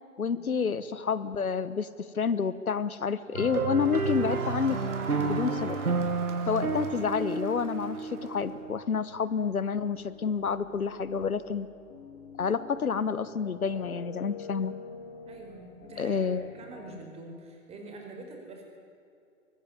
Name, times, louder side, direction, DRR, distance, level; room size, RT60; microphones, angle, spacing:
voice 1, 0.2-4.8 5.1-5.8 6.5-11.7 12.4-14.7 16.0-16.5, left 6 dB, 75° left, 15 dB, 1.3 m, -29 dB
sound 1, 3.3-17.0, left 4 dB, 25° left, 4.5 m, -49 dB
sound 2, 3.3-8.9, right 4 dB, 85° right, 2.1 m, -31 dB
Crowd, 3.7-8.6, right 4 dB, 55° right, 4.0 m, -42 dB
voice 2, 15.2-18.6, right 2 dB, 15° right, 2 dB, 4.6 m, -45 dB
24.0 x 20.0 x 9.7 m, 2.5 s
figure-of-eight pair, 135°, 43 cm